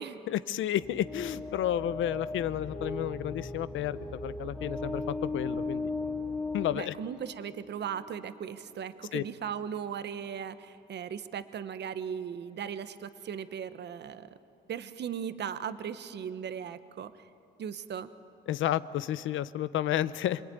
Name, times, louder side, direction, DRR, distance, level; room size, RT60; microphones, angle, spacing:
voice 1, 0.3-5.9 6.5-6.9 9.1-9.2 18.5-20.4, left 12 dB, 80° left, 15 dB, 0.8 m, -31 dB
sound 1, 0.8-7.7, left 2 dB, 5° left, 3.0 m, -37 dB
voice 2, 6.7-14.4 14.7-17.1 17.6-18.1, right 8 dB, 60° right, 12 dB, 1.1 m, -37 dB
26.5 x 22.0 x 9.4 m, 2.8 s
cardioid pair, 90°, 20 cm